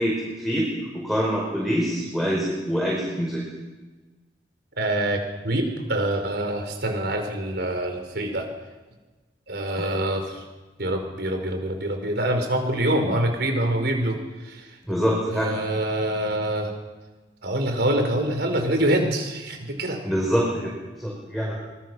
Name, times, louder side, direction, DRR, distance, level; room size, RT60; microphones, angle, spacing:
voice 1, 0.0-3.4 9.8-9.9 14.9-15.5 20.0-20.7 21.0-21.6, equal, ahead, -3 dB, 5.3 m, -25 dB
voice 2, 4.8-5.2 5.4-8.5 9.5-10.4 10.8-14.2 14.4-14.7 15.3-16.7 17.4-20.0, right 1 dB, 65° right, 5 dB, 4.9 m, -25 dB
25.0 x 21.0 x 6.4 m, 1.2 s
head